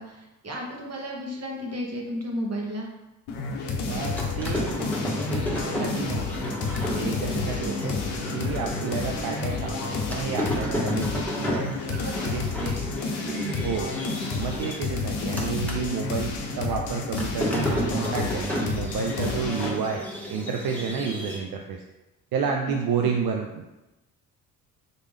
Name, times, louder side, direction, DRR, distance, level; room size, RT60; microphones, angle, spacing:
voice 1, 0.0-2.9 7.6-7.7 11.9-12.9 13.3-13.7 23.0-23.1, equal, 35° right, -1 dB, 1.3 m, -34 dB
sound 1, 3.3-19.8, left 4 dB, 65° left, 0.7 m, -31 dB
sound 2, 3.9-15.8 16.1-21.4, left 1 dB, 5° left, 1.2 m, -32 dB
voice 2, 3.9-4.7 5.3-7.9 8.3-12.4 13.6-13.9 14.4-21.8 22.3-23.7, right 6 dB, 55° right, 2 dB, 0.6 m, -30 dB
4.1 x 3.2 x 3.5 m, 1.0 s
hypercardioid pair, 45°, 44 cm